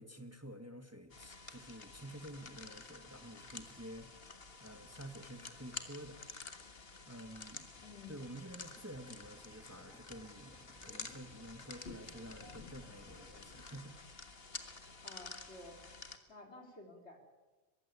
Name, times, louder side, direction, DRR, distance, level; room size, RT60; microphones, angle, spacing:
voice 1, 0.0-4.1 4.6-6.2 6.5-6.7 7.1-7.7 8.1-14.4, right 1 dB, 15° right, 7 dB, 1.5 m, -50 dB
sound 1, 1.1-16.2, left 4 dB, 60° left, 1.8 m, -51 dB
voice 2, 7.8-8.3 15.0-15.8 16.3-17.2, left 2 dB, 75° left, 3 dB, 4.0 m, -53 dB
sound 2, 7.8-13.4, equal, 5° left, 2.0 m, -63 dB
22.5 x 15.0 x 9.6 m, 1.2 s
omnidirectional pair, 1.1 m